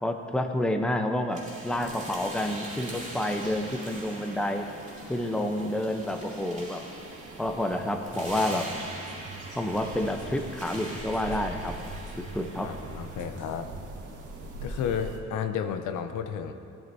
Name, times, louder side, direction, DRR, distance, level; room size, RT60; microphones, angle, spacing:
voice 1, 0.0-4.7 5.1-6.8 7.4-8.7 9.6-11.8 12.2-12.7, left 1 dB, 5° left, 4 dB, 0.7 m, -29 dB
sound 1, 1.3-13.3, right 1 dB, 25° right, 2.7 m, -43 dB
sound 2, 1.6-15.2, right 2 dB, 80° right, 1.3 m, -43 dB
sound 3, 7.8-13.8, right 4 dB, 40° right, 1.5 m, -46 dB
voice 2, 12.6-13.7 14.6-16.5, left 7 dB, 80° left, 8 dB, 0.7 m, -32 dB
16.0 x 8.9 x 2.7 m, 2.5 s
cardioid pair, 90°, 30 cm